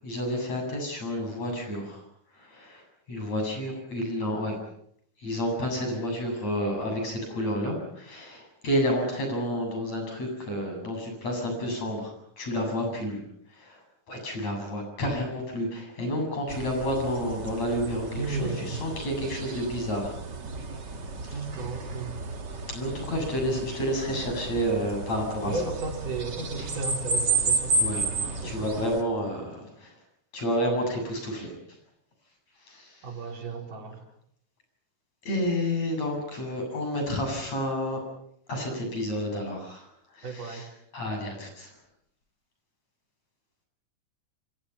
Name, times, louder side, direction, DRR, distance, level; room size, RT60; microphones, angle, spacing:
voice 1, 0.0-2.0 2.5-2.8 3.1-4.6 5.2-13.2 13.6-13.8 14.1-20.1 22.7-25.6 27.8-29.9 30.3-31.5 32.7-32.9 35.3-38.0 38.5-39.9 40.2-40.6 40.9-41.7, equal, 55° left, 3 dB, 9.1 m, -30 dB
sound 1, 16.5-29.0, right 3 dB, 35° right, 2.5 m, -32 dB
voice 2, 18.2-18.8 21.3-22.2 23.4-23.6 25.4-28.7 33.0-34.0 40.2-40.7, right 4 dB, 90° right, 2 dB, 6.0 m, -35 dB
28.0 x 27.0 x 5.8 m, 0.69 s
omnidirectional pair, 3.6 m